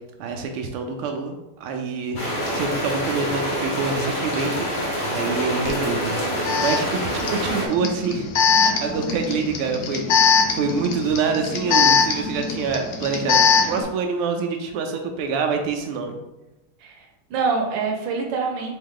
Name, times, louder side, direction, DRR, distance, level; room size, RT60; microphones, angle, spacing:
voice 1, 0.2-8.3 8.5-16.1, right 5 dB, 85° right, 3 dB, 1.5 m, -26 dB
sound 1, 2.2-7.7, equal, 45° left, 0.8 m, -26 dB
Alarm, 5.7-5.8 6.5-13.8, left 5 dB, 75° left, 0.9 m, -21 dB
voice 2, 16.8-18.7, right 4 dB, 70° right, 1 dB, 1.4 m, -25 dB
3.8 x 3.6 x 3.7 m, 0.97 s
omnidirectional pair, 2.4 m